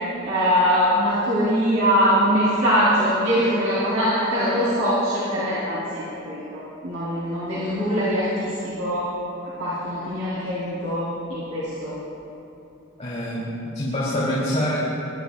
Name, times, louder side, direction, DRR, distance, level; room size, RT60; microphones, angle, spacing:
voice 1, 0.2-9.1 9.6-12.0, equal, 70° right, -10 dB, 3.2 m, -22 dB
voice 2, 13.0-14.8, equal, 35° left, -10 dB, 2.9 m, -25 dB
21.5 x 12.0 x 2.3 m, 2.9 s
head